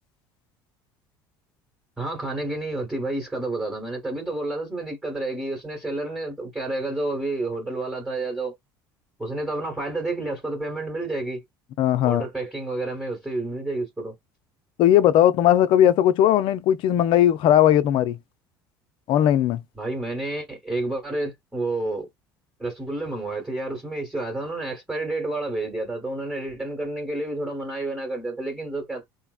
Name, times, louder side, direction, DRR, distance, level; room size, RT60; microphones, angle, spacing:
voice 1, 2.0-8.6 9.2-11.4 12.0-14.1 19.7-22.1 22.6-29.0, right 2 dB, 5° right, 1.4 m, -30 dB
voice 2, 11.8-12.2 14.8-18.2 19.1-19.6, left 11 dB, 55° left, 0.4 m, -18 dB
3.2 x 2.0 x 2.4 m
hypercardioid pair, 65°, 10 cm